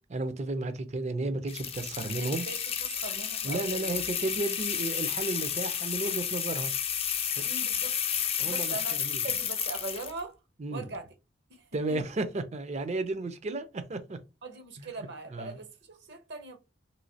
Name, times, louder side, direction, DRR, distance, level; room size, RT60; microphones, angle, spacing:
voice 1, 0.1-2.4 3.4-6.7 7.3-7.4 8.4-9.2 10.6-10.8 11.7-14.2 14.8-14.9 15.3-15.6, right 2 dB, 35° right, 0.5 m, -33 dB
sound 1, 1.5-10.2, left 8 dB, 30° left, 0.4 m, -32 dB
voice 2, 2.1-4.0 7.4-8.0 8.4-10.4 10.7-11.1 11.5-12.0 14.4-16.6, right 3 dB, 60° right, 0.8 m, -41 dB
3.1 x 2.8 x 2.7 m
head